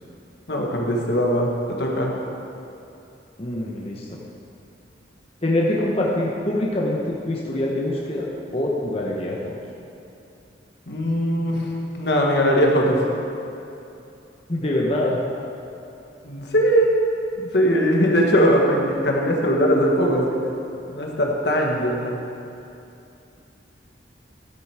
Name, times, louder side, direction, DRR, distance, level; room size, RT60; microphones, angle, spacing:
voice 1, 0.5-2.1 10.9-11.7 12.0-13.0 16.2-16.9 17.4-20.5 20.9-22.1, equal, 65° left, -1 dB, 1.6 m, -20 dB
voice 2, 3.4-4.1 5.4-8.3 8.5-9.6 14.5-15.2, left 1 dB, 35° left, -3 dB, 1.1 m, -24 dB
13.0 x 7.8 x 4.9 m, 2.8 s
head